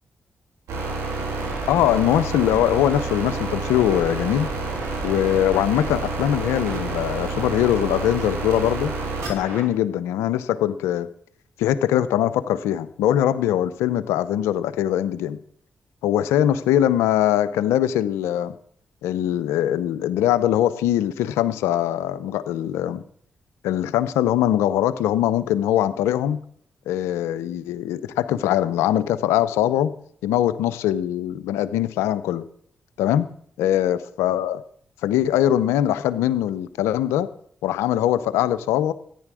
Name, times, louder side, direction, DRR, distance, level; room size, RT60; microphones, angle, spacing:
sound 1, 0.7-9.6, right 3 dB, 85° right, 3.3 m, -29 dB
voice 1, 1.7-4.5 5.0-8.9 9.3-11.1 11.6-15.4 16.0-18.5 19.0-23.0 23.6-26.4 26.9-29.9 30.2-32.4 33.0-33.3 33.6-34.6 35.0-37.3 37.6-38.9, left 11 dB, 90° left, 15 dB, 0.7 m, -22 dB
14.0 x 10.0 x 6.2 m, 0.63 s
supercardioid pair, 40°, 4 cm